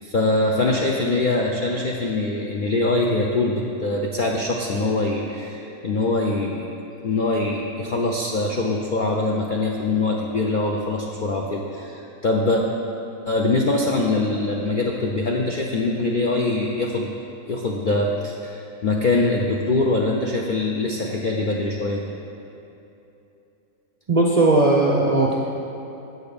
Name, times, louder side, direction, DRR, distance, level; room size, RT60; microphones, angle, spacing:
voice 1, 0.0-6.7 7.0-12.6 13.3-17.1 17.5-22.0, left 2 dB, 60° left, -1 dB, 0.5 m, -23 dB
voice 2, 24.1-25.4, right 2 dB, 50° right, -3 dB, 0.4 m, -17 dB
7.9 x 6.5 x 5.1 m, 2.9 s
omnidirectional pair, 1.5 m